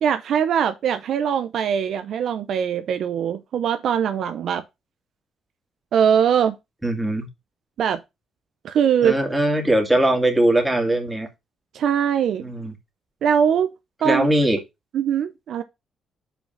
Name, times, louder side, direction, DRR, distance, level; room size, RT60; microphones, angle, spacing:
voice 1, 0.0-4.6 5.9-6.6 7.8-8.0 8.6-9.2 11.7-12.4 13.2-13.7 14.0-14.3 14.9-15.6, right 8 dB, 70° right, 0.8 m, -21 dB
voice 2, 6.8-7.3 9.0-11.3 12.4-12.7 14.0-14.6, right 1 dB, 10° right, 2.2 m, -20 dB
5.5 x 4.7 x 5.6 m
cardioid pair, 90°, 0 cm